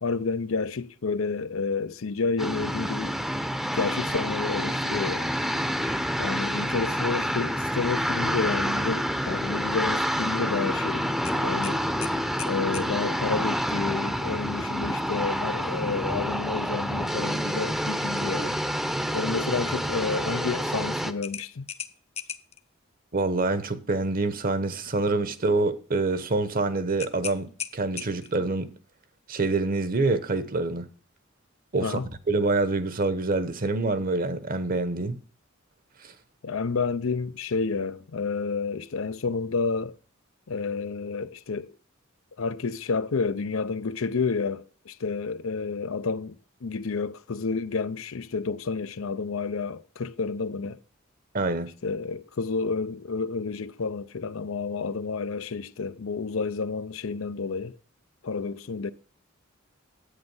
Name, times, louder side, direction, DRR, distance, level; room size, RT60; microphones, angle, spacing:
voice 1, 0.0-3.2 3.7-5.3 6.2-11.1 11.4-11.8 12.4-18.6 19.1-21.7 31.8-32.1 36.4-39.9 40.5-41.7 42.4-46.3 46.6-50.8 51.8-57.8 58.2-58.9, left 4 dB, 75° left, 0.6 m, -30 dB
sound 1, 2.4-21.1, equal, ahead, 0.7 m, -28 dB
sound 2, 11.2-12.9 15.5-15.8 16.2-16.3 21.2-22.6 27.0-28.4, left 8 dB, 30° left, 0.7 m, -38 dB
voice 2, 23.1-28.7 29.3-30.9 31.7-32.0 32.3-35.2 36.0-36.1 51.3-51.7, right 3 dB, 45° right, 1.0 m, -26 dB
10.5 x 8.7 x 5.4 m
head